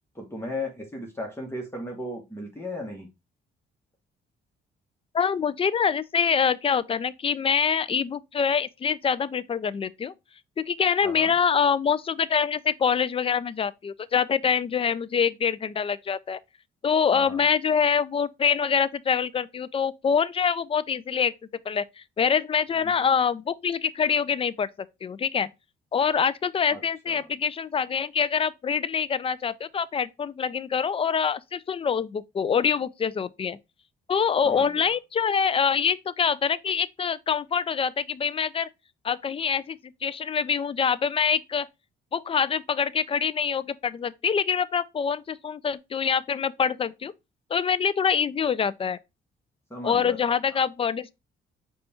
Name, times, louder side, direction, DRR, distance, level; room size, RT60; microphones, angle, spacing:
voice 1, 0.1-3.1 11.0-11.3 17.1-17.4 22.8-23.0 26.7-27.3 34.4-34.9 49.7-50.6, left 1 dB, 10° left, 1.2 m, -36 dB
voice 2, 5.1-10.1 10.6-16.4 16.8-21.3 21.7-24.7 25.0-25.5 25.9-33.6 34.1-38.7 39.0-41.7 42.1-47.1 47.5-49.0 49.8-51.1, left 6 dB, 30° left, 0.3 m, -25 dB
5.1 x 2.4 x 4.2 m
cardioid pair, 90°, 20 cm